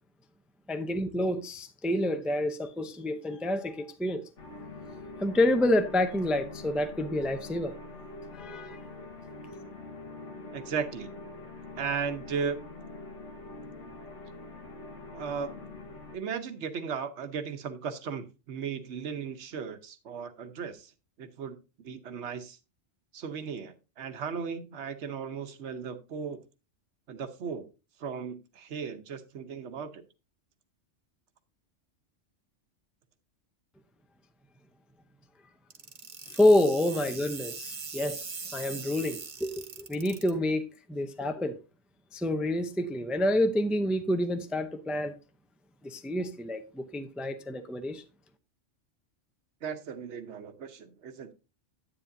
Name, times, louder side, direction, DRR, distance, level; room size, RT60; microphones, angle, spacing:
voice 1, 0.7-4.2 5.2-7.7 8.3-8.8 36.3-41.6 42.1-45.1 45.8-48.0, left 1 dB, ahead, 0.3 m, -28 dB
sound 1, 4.4-16.2, left 2 dB, 75° left, 1.6 m, -44 dB
voice 2, 10.5-11.1 11.8-12.6 15.1-15.5 16.1-20.9 21.2-22.6 23.1-26.4 27.1-27.7 28.0-30.0 49.6-51.3, right 6 dB, 70° right, 1.1 m, -36 dB
sound 2, 35.7-40.3, right 5 dB, 50° right, 1.1 m, -41 dB
9.9 x 8.8 x 2.6 m
omnidirectional pair, 1.3 m